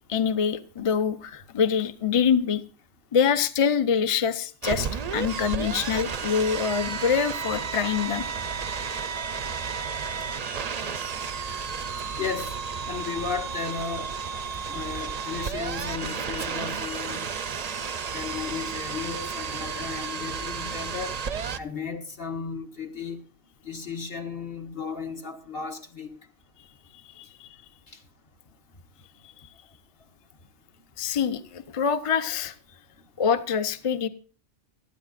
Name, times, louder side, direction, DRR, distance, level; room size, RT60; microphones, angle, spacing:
voice 1, 0.1-2.6 3.1-8.3 27.2-27.5 31.0-32.5 33.2-34.1, left 7 dB, 35° left, 12 dB, 0.7 m, -25 dB
Computer CD player open play AM radio, 4.6-21.6, right 6 dB, 45° right, 0.6 m, -32 dB
voice 2, 12.2-12.6 12.9-14.1 14.7-17.3 18.1-21.2 21.6-23.2 23.6-26.1 27.9-28.0, left 5 dB, 55° left, 2 dB, 1.7 m, -34 dB
18.5 x 13.0 x 2.5 m, 0.39 s
omnidirectional pair, 1.2 m